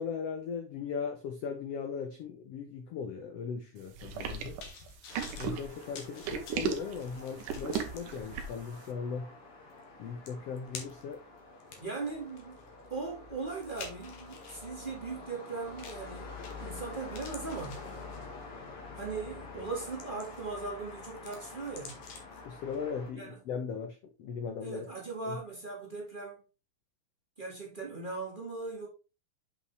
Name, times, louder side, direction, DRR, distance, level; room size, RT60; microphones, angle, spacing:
voice 1, 0.0-4.6 5.4-9.3 10.0-11.2 22.4-24.9 25.3-25.4, left 6 dB, 80° left, 1.4 m, -38 dB
sound 1, 4.0-8.7, right 6 dB, 75° right, 2.5 m, -36 dB
sound 2, 4.1-8.0 8.6-8.7 9.8-9.9 10.3-11.1 11.6-14.7 15.8-16.1 16.4-16.8 17.1-18.4 19.0-19.2 19.7-20.6 20.9-22.4 22.7-22.8, left 5 dB, 65° left, 2.6 m, -49 dB
sound 3, 5.1-23.1, left 3 dB, 45° left, 2.5 m, -47 dB
voice 2, 11.8-12.6 12.9-17.8 18.9-22.0 23.1-23.4 24.6-26.4 27.4-28.9, right 4 dB, 25° right, 1.2 m, -39 dB
8.0 x 5.4 x 3.3 m
omnidirectional pair, 4.0 m